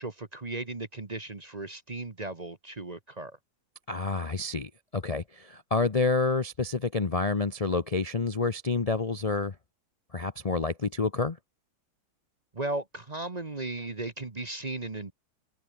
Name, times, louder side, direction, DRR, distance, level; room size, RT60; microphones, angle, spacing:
voice 1, 0.0-3.4 12.5-15.1, right 2 dB, 25° right, 1.2 m, -36 dB
voice 2, 3.9-9.5 10.1-11.4, left 3 dB, 30° left, 0.8 m, -28 dB
omnidirectional pair, 1.8 m